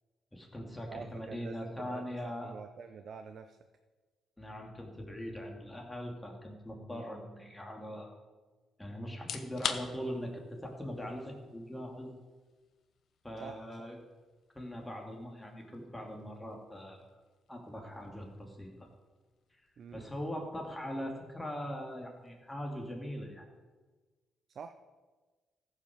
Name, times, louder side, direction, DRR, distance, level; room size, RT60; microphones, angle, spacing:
voice 1, 0.3-2.5 4.4-8.1 8.8-12.1 13.2-14.0 14.5-17.0 17.5-18.9 19.9-23.5, equal, 10° left, 1 dB, 2.4 m, -41 dB
voice 2, 0.9-3.6 6.9-7.1 13.4-14.0 19.8-20.1 24.5-24.7, right 6 dB, 55° right, 8 dB, 0.6 m, -47 dB
sound 1, 9.1-24.0, left 7 dB, 65° left, 0.9 m, -48 dB
14.5 x 5.8 x 6.3 m, 1.3 s
cardioid pair, 90°, 0 cm